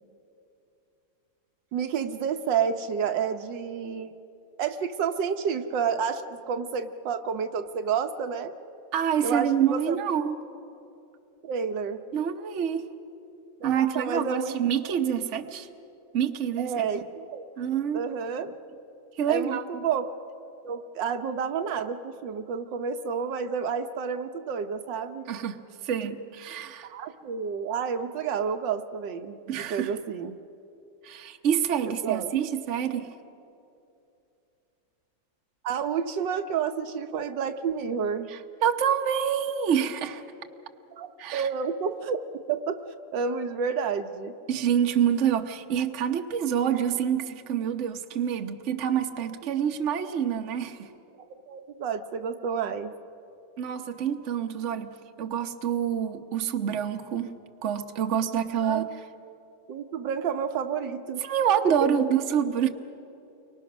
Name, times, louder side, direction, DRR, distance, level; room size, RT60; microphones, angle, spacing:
voice 1, 1.7-4.1 4.6-6.2 6.5-8.5 9.2-10.0 11.4-12.0 13.6-14.6 16.6-17.4 17.9-18.5 19.3-20.0 20.6-25.3 26.8-30.4 32.0-32.3 35.6-38.3 40.9-42.2 42.5-42.8 43.1-44.3 51.5-52.9 58.6-58.8 59.7-61.2, right 6 dB, 70° right, 7 dB, 1.5 m, -30 dB
voice 2, 8.9-10.3 12.1-12.8 13.6-15.7 16.1-16.9 17.6-18.1 19.1-19.8 25.3-26.9 29.5-29.9 31.0-33.1 38.3-40.2 41.2-41.5 44.5-50.9 53.6-57.3 57.6-58.9 61.2-62.7, right 8 dB, 45° right, 5 dB, 1.2 m, -27 dB
30.0 x 24.0 x 6.1 m, 2.8 s
omnidirectional pair, 2.1 m